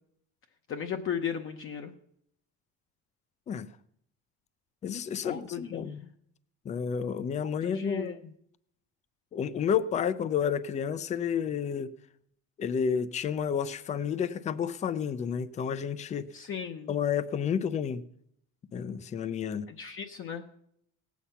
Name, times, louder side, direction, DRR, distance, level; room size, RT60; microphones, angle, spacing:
voice 1, 0.7-1.9 5.2-6.1 7.6-8.1 16.3-16.9 19.7-20.4, left 8 dB, 35° left, 5 dB, 0.8 m, -36 dB
voice 2, 4.8-6.0 6.6-8.2 9.3-11.9 12.6-16.3 16.9-18.1 18.7-19.7, left 7 dB, 20° left, 16 dB, 0.4 m, -30 dB
18.0 x 8.3 x 5.6 m, 0.73 s
cardioid pair, 160°, 35 cm